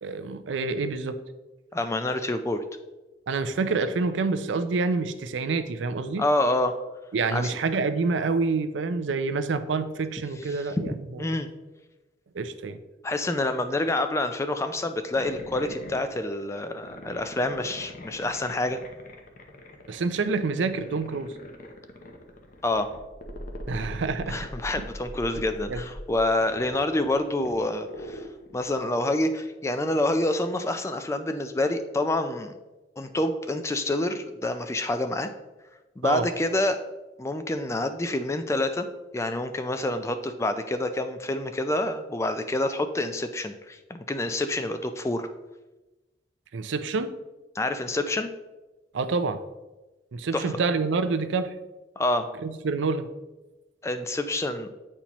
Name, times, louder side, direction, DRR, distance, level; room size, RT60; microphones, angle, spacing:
voice 1, 0.0-1.2 3.3-6.2 7.1-11.2 12.3-12.8 19.9-21.3 23.7-24.5 24.8-24.9 25.7-25.8 36.0-36.2 46.5-47.1 48.9-49.4 50.1-51.5 52.4-53.1, right 4 dB, 85° right, 11 dB, 0.5 m, -27 dB
voice 2, 1.7-2.6 6.2-6.7 7.3-7.5 10.5-10.6 11.2-11.5 13.0-18.8 22.6-22.9 24.3-28.2 28.5-32.5 33.0-35.3 36.0-36.8 37.2-38.9 39.1-45.3 47.6-48.3 50.3-50.5 52.0-52.3 53.8-54.7, left 1 dB, 15° left, 8 dB, 0.3 m, -27 dB
sound 1, 15.1-28.9, left 1 dB, 45° left, 0.7 m, -42 dB
8.3 x 4.3 x 2.9 m, 1.1 s
head